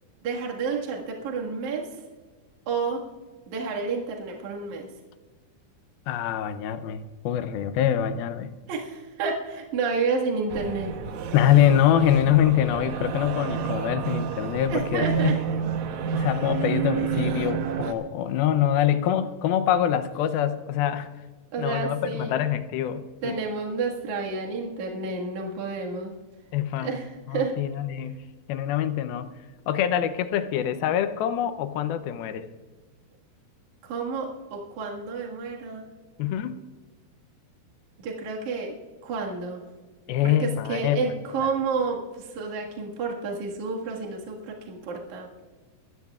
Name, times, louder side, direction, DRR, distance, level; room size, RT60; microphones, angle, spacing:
voice 1, 0.2-1.9 2.7-3.0 3.5-4.9 8.7-10.9 14.7-15.4 21.5-22.3 23.2-26.1 26.8-27.5 33.8-35.8 38.0-38.7 39.0-39.6 40.2-45.5, right 4 dB, 55° right, -1 dB, 2.9 m, -30 dB
voice 2, 6.1-8.5 11.3-15.3 16.1-21.1 21.6-23.4 26.5-26.9 27.3-28.2 28.5-29.3 29.7-32.5 36.2-36.5 40.1-41.0, left 10 dB, 80° left, 11 dB, 2.5 m, -24 dB
sound 1, 10.5-17.9, right 7 dB, 70° right, 1.8 m, -29 dB
22.5 x 15.0 x 2.4 m, 1.3 s
omnidirectional pair, 4.5 m